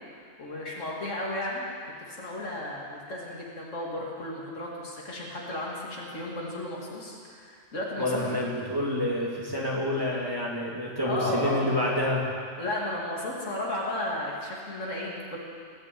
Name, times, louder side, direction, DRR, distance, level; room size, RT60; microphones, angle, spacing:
voice 1, 0.1-1.7 2.0-8.5 11.0-11.7 12.6-15.4, left 1 dB, 90° left, -4 dB, 3.0 m, -34 dB
voice 2, 8.0-12.3, left 1 dB, 20° right, -4 dB, 2.6 m, -28 dB
20.0 x 7.5 x 8.5 m, 2.2 s
omnidirectional pair, 1.3 m